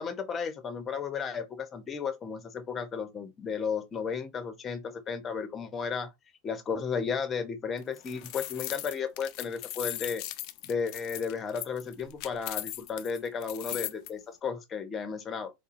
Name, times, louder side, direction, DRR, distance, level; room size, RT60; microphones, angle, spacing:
voice 1, 0.0-6.1 6.4-10.2 10.6-15.5, left 6 dB, 30° left, 0.9 m, -34 dB
sound 1, 7.8-14.1, left 14 dB, 55° left, 0.4 m, -38 dB
3.7 x 2.6 x 2.5 m
hypercardioid pair, 95°, 0 cm